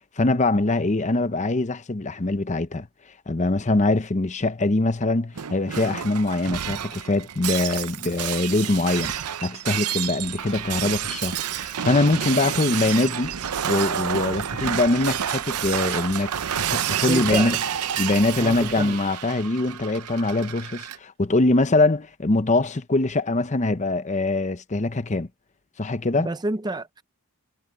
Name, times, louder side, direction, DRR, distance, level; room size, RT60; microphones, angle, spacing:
voice 1, 0.2-2.9 3.3-13.3 13.7-17.6 18.0-25.3 25.8-26.3, left 2 dB, 30° left, 0.7 m, -23 dB
Shatter, 5.4-21.0, right 9 dB, 90° right, 0.7 m, -29 dB
voice 2, 17.0-17.6 18.4-19.0 26.2-27.0, right 2 dB, 20° right, 0.5 m, -29 dB
head